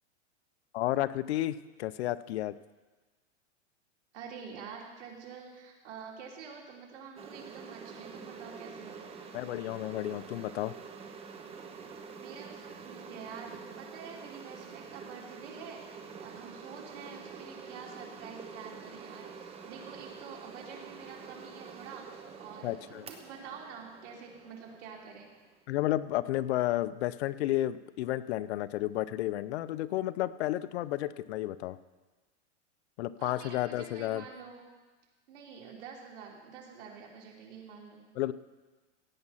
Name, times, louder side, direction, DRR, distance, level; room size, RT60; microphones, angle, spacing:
voice 1, 0.7-2.5 9.3-10.7 22.6-23.1 25.7-31.8 33.0-34.2 38.2-38.3, left 14 dB, 60° left, 16 dB, 0.7 m, -32 dB
voice 2, 4.1-9.1 12.2-25.3 33.2-34.6 35.3-38.0, right 6 dB, 70° right, -1 dB, 3.4 m, -47 dB
sound 1, 7.2-25.6, right 5 dB, 15° right, 0.9 m, -47 dB
16.0 x 8.8 x 5.7 m, 1.2 s
supercardioid pair, 145°, 36 cm